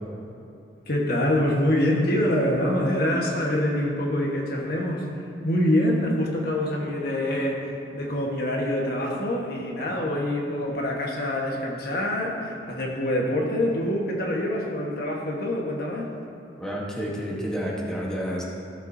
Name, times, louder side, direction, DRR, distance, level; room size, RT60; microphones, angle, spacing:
voice 1, 0.9-5.0 5.4-7.6 7.9-16.1, left 1 dB, 60° left, -1 dB, 1.4 m, -25 dB
voice 2, 16.6-18.4, equal, 5° left, -4 dB, 1.2 m, -30 dB
15.5 x 7.7 x 2.7 m, 2.8 s
head